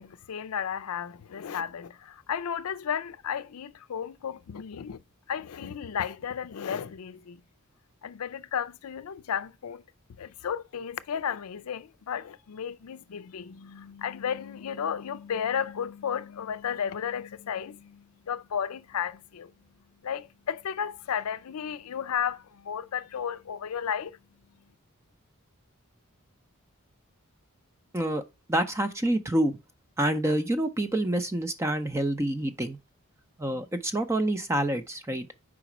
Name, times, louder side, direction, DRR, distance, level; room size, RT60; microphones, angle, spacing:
voice 1, 0.0-5.0 5.3-7.4 8.0-9.8 10.2-19.5 20.0-24.2, left 8 dB, 90° left, 0.4 m, -33 dB
voice 2, 28.5-29.6 30.0-32.8 33.4-35.3, right 1 dB, 15° right, 0.5 m, -27 dB
4.9 x 4.1 x 5.9 m
head